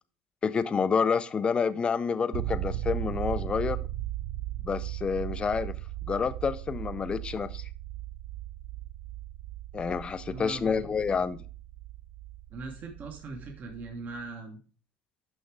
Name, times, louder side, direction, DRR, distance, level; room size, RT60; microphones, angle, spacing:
voice 1, 0.4-3.8 4.6-5.7 6.1-7.7 9.7-11.4, left 5 dB, 20° left, 0.5 m, -28 dB
sound 1, 2.3-14.3, right 14 dB, 65° right, 0.4 m, -37 dB
voice 2, 10.3-10.9 12.5-14.6, right 3 dB, 40° right, 1.2 m, -40 dB
6.5 x 5.8 x 4.7 m
supercardioid pair, 125°, 5 cm